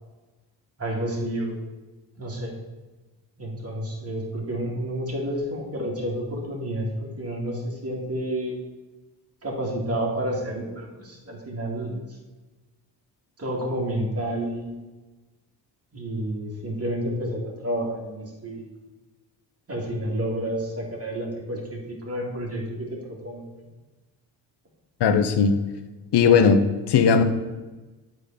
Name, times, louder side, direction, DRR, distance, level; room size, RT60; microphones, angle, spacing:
voice 1, 0.8-1.6 2.2-2.5 3.4-8.6 9.4-12.2 13.4-14.8 15.9-18.7 19.7-23.7, right 1 dB, 30° right, -2 dB, 2.6 m, -30 dB
voice 2, 25.0-25.5 26.1-26.6 26.9-27.2, left 6 dB, 60° left, 9 dB, 1.0 m, -17 dB
8.2 x 4.0 x 5.8 m, 1.2 s
supercardioid pair, 60°, 46 cm